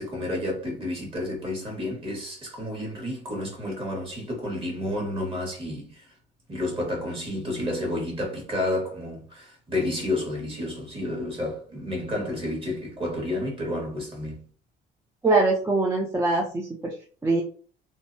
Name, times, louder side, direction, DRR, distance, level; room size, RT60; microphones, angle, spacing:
voice 1, 0.0-6.1 6.5-14.4, left 1 dB, 30° right, 1.4 m, -30 dB
voice 2, 15.2-16.9 17.2-17.4, right 3 dB, 15° right, 0.4 m, -23 dB
2.6 x 2.1 x 2.5 m
cardioid pair, 110°, 17 cm